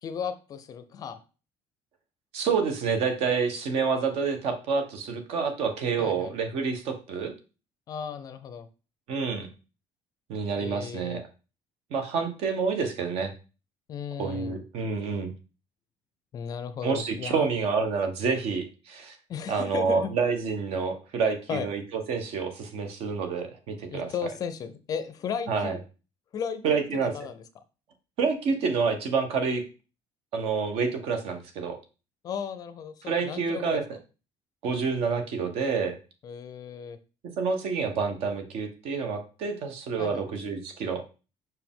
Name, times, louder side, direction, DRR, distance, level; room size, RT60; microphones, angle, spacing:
voice 1, 0.0-1.2 6.0-6.3 7.9-8.7 10.6-11.2 13.9-14.6 16.3-17.5 19.3-20.1 21.5-21.7 23.9-25.8 26.3-27.4 32.2-33.8 36.2-37.0 40.0-40.3, left 7 dB, 30° left, 11 dB, 0.5 m, -35 dB
voice 2, 2.3-7.3 9.1-9.5 10.3-11.2 11.9-13.3 14.2-15.3 16.8-19.2 19.5-24.1 25.5-25.8 26.6-27.1 28.2-29.6 30.3-31.8 33.0-33.8 34.6-36.0 37.4-41.0, right 5 dB, 60° right, 7 dB, 1.1 m, -28 dB
5.5 x 4.8 x 3.6 m, 0.33 s
cardioid pair, 180°, 12 cm